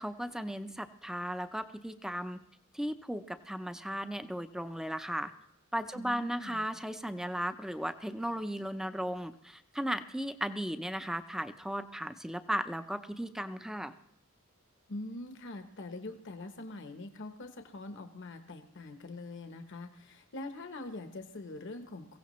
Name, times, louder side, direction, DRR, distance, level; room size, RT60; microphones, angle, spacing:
voice 1, 0.0-2.4 2.7-5.3 5.7-13.9, equal, ahead, 10 dB, 0.6 m, -36 dB
voice 2, 5.9-6.6 14.9-22.2, left 2 dB, 60° left, 6 dB, 1.0 m, -44 dB
22.5 x 16.0 x 3.1 m, 0.75 s
head